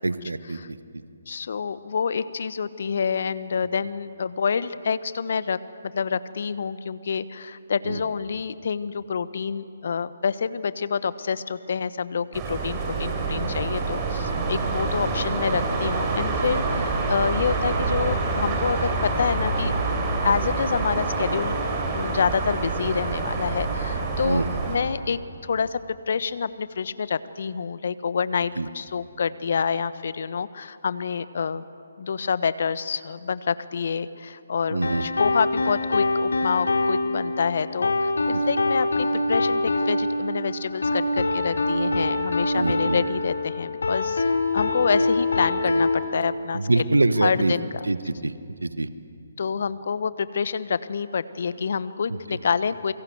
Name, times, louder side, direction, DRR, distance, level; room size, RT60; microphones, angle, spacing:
voice 1, 0.0-0.8 7.8-8.0 16.7-16.8 24.2-24.6 28.5-28.7 34.7-35.0 38.3-38.4 42.6-43.0 46.5-47.5 47.8-48.3 48.6-48.9 52.1-52.4, right 2 dB, 80° right, 13 dB, 1.4 m, -25 dB
voice 2, 1.3-5.6 5.9-19.7 20.2-21.6 21.9-25.8 26.1-31.7 32.0-38.1 38.4-44.2 44.5-46.8 47.2-47.6 49.4-52.9, left 6 dB, 55° left, 15 dB, 1.1 m, -27 dB
sound 1, 12.3-24.8, right 3 dB, 20° right, 4.5 m, -26 dB
sound 2, 34.8-46.0, left 2 dB, 70° left, 3.3 m, -24 dB
28.0 x 24.0 x 8.0 m, 2.5 s
figure-of-eight pair, 140°, 0 cm